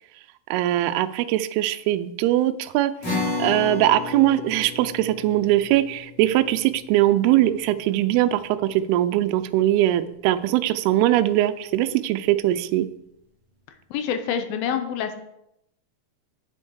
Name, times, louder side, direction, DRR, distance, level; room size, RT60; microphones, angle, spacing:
voice 1, 0.5-12.9, right 14 dB, 85° right, 11 dB, 2.5 m, -21 dB
sound 1, 3.0-9.7, left 3 dB, 35° left, 3.9 m, -34 dB
voice 2, 13.9-15.1, left 8 dB, 75° left, 7 dB, 2.4 m, -26 dB
7.8 x 7.5 x 4.7 m, 0.81 s
omnidirectional pair, 4.6 m